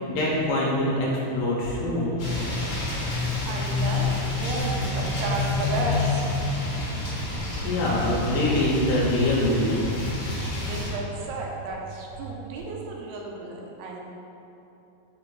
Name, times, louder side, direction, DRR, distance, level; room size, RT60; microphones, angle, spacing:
voice 1, 0.0-2.1 7.4-9.9, left 1 dB, 80° left, -4 dB, 2.5 m, -24 dB
sound 1, 2.2-10.9, left 3 dB, 65° left, 2.0 m, -28 dB
voice 2, 3.5-7.3 10.6-14.0, right 2 dB, 80° right, -1 dB, 3.0 m, -34 dB
sound 2, 5.1-6.4 7.0-8.4 8.8-9.2 9.7-11.8 12.1-12.7, right 7 dB, 65° right, 1.8 m, -40 dB
6.8 x 4.4 x 3.8 m, 2.9 s
omnidirectional pair, 5.6 m